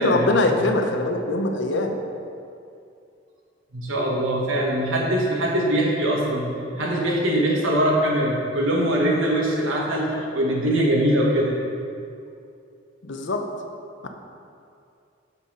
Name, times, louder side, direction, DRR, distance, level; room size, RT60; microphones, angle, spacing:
voice 1, 0.0-2.0 10.1-10.2 13.0-13.4 14.0-14.1, left 2 dB, 65° left, 4 dB, 0.8 m, -23 dB
voice 2, 3.7-6.5 6.7-11.6, right 1 dB, 85° right, -2 dB, 1.5 m, -22 dB
6.9 x 6.7 x 5.0 m, 2.5 s
head